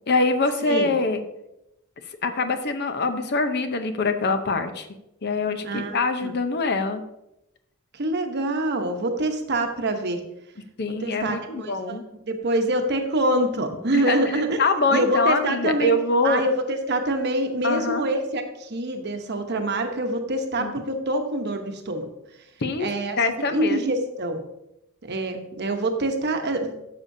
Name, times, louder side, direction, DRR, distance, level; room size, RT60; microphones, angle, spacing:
voice 1, 0.1-1.2 2.2-4.9 5.2-7.0 10.8-12.0 13.9-14.2 14.6-16.4 17.6-18.0 20.6-20.7 22.6-22.9 23.2-23.8, left 3 dB, 50° left, 8 dB, 0.7 m, -24 dB
voice 2, 0.6-0.9 5.6-6.3 7.9-10.2 11.0-12.0 12.3-14.6 14.9-15.9 16.2-22.1 22.8-23.2 23.5-24.4 25.0-26.8, right 1 dB, 50° right, 5 dB, 1.0 m, -25 dB
12.0 x 6.8 x 2.7 m, 0.87 s
head